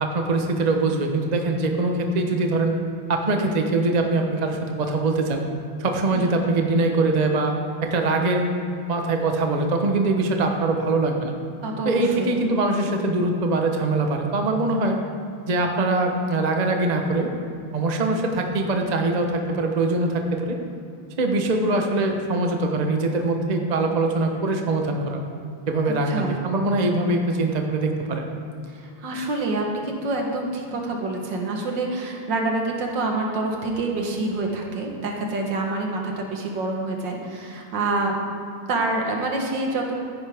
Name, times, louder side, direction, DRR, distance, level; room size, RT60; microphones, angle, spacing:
voice 1, 0.0-2.8 3.1-5.4 5.8-8.5 8.9-11.3 11.8-15.0 15.5-17.3 17.7-20.6 21.2-25.2 25.7-28.3, right 2 dB, 35° right, 3 dB, 0.7 m, -23 dB
voice 2, 11.6-12.4 25.9-26.4 28.7-38.2 38.7-40.0, right 2 dB, 65° right, 1 dB, 1.9 m, -27 dB
14.5 x 10.5 x 3.5 m, 2.6 s
omnidirectional pair, 2.2 m